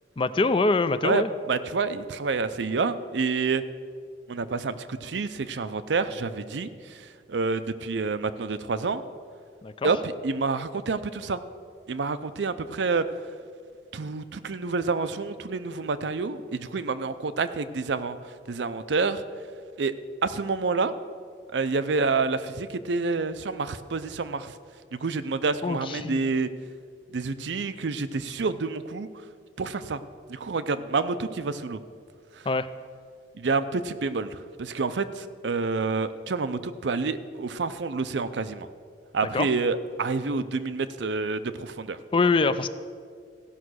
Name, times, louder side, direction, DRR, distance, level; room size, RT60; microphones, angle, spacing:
voice 1, 0.2-1.3 9.6-9.9 25.6-26.2 32.5-32.7 39.3-39.5 42.1-42.7, left 3 dB, 30° left, 13 dB, 0.4 m, -24 dB
voice 2, 1.0-3.6 4.3-9.0 9.8-11.4 11.9-13.0 13.9-18.2 18.5-19.2 19.8-19.9 20.2-20.9 21.5-24.6 24.9-26.5 27.1-29.1 29.6-30.0 30.3-31.8 32.4-32.5 33.3-38.7 39.1-42.0, right 4 dB, 80° right, 12 dB, 0.5 m, -28 dB
15.5 x 5.8 x 6.3 m, 2.1 s
head